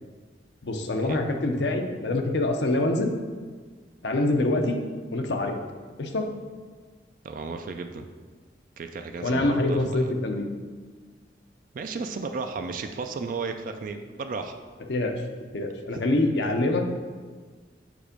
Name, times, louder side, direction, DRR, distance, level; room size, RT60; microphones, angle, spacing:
voice 1, 0.6-3.1 4.0-4.8 5.1-5.6 6.0-6.2 9.2-10.5 14.9-15.2 15.5-16.8, left 2 dB, 70° left, 4 dB, 0.7 m, -25 dB
voice 2, 7.2-8.1 8.8-10.1 11.7-14.6 15.9-16.0 16.4-16.5, right 4 dB, 45° right, 6 dB, 0.3 m, -34 dB
5.0 x 4.4 x 5.1 m, 1.5 s
head